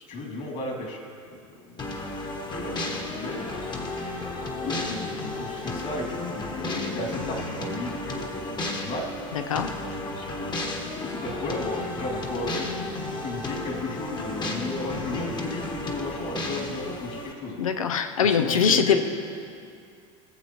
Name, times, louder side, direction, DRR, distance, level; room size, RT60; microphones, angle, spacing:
voice 1, 0.1-1.0 1.6-2.0 2.3-2.8 3.1-3.6 4.2-9.0 9.8-10.6 10.9-17.6 18.3-19.0, left 2 dB, 50° left, 0 dB, 2.7 m, -34 dB
sound 1, 1.8-17.3, left 2 dB, 25° left, 1.3 m, -33 dB
voice 2, 9.3-9.8 17.6-19.0, left 7 dB, 85° left, 9 dB, 0.6 m, -23 dB
19.5 x 7.2 x 3.1 m, 2.4 s
hypercardioid pair, 85°, 17 cm